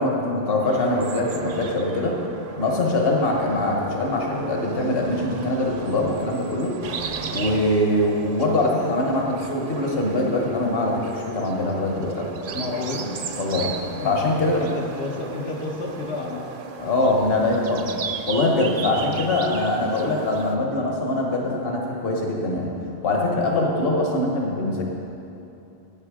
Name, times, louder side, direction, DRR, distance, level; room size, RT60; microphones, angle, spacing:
voice 1, 0.0-2.2 2.6-6.7 7.3-12.3 13.4-13.7 14.0-14.6 16.8-17.9 18.3-22.7 23.0-24.8, left 2 dB, 65° left, -1 dB, 1.5 m, -23 dB
sound 1, 0.6-20.5, right 5 dB, 60° right, 0.8 m, -36 dB
voice 2, 12.5-13.1 14.0-16.9, left 3 dB, 90° left, -3 dB, 1.4 m, -31 dB
10.5 x 8.7 x 4.9 m, 2.8 s
omnidirectional pair, 1.1 m